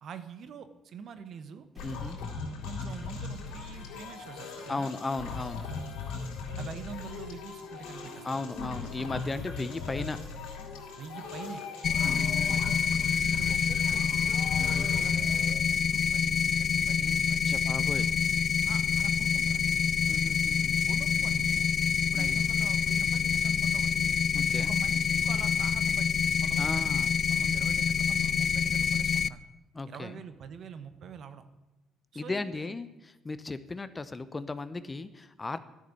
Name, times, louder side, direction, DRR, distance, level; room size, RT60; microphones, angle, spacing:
voice 1, 0.0-1.7 2.7-4.9 6.6-8.5 11.0-11.6 11.9-12.8 13.1-14.3 14.9-17.6 18.0-18.2 18.6-20.0 20.9-21.7 22.0-24.1 24.6-26.9 27.3-29.4 29.9-31.4 32.1-32.7, right 6 dB, 60° right, 11 dB, 1.1 m, -45 dB
sound 1, 1.7-4.5, right 1 dB, 25° right, 2.2 m, -52 dB
sound 2, 1.8-15.5, left 4 dB, 80° left, 3.3 m, -39 dB
voice 2, 1.8-2.2 4.7-5.6 8.2-10.2 12.0-12.6 14.6-14.9 17.4-18.1 20.1-20.8 22.1-22.4 24.3-24.8 26.6-27.1 29.7-30.2 32.1-35.6, left 3 dB, 25° left, 12 dB, 0.9 m, -36 dB
sound 3, 11.8-29.3, left 6 dB, 50° left, 0.4 m, -27 dB
11.5 x 6.7 x 9.2 m, 1.1 s
supercardioid pair, 85°, 0 cm